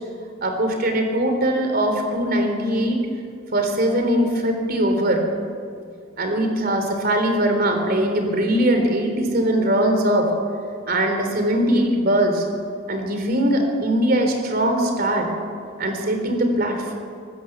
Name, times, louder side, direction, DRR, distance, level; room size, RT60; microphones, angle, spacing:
voice 1, 0.4-3.0 3.5-5.2 6.2-10.3 10.9-12.4 12.9-15.3 15.8-17.0, right 1 dB, 45° right, 4 dB, 3.5 m, -21 dB
25.0 x 13.5 x 8.2 m, 2.3 s
head